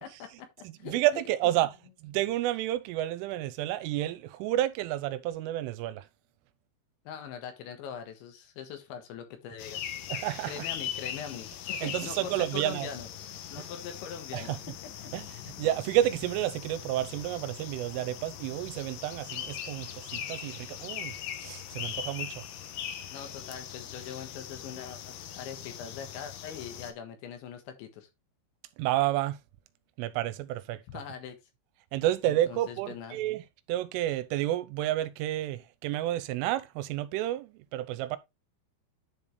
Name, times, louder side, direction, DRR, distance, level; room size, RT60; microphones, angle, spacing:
voice 1, 0.0-1.2 7.1-9.8 10.5-13.1 13.5-14.6 23.1-28.1 30.9-31.4 32.3-33.2, left 8 dB, 70° left, 3.7 m, -42 dB
voice 2, 0.6-6.1 10.1-10.7 11.8-12.9 13.6-13.7 14.3-14.6 15.1-22.5 28.8-29.4 30.0-31.0 31.9-38.2, right 14 dB, 90° right, 3.3 m, -30 dB
sound 1, 9.6-26.9, left 10 dB, 85° left, 1.9 m, -40 dB
10.5 x 5.4 x 3.3 m
omnidirectional pair, 5.7 m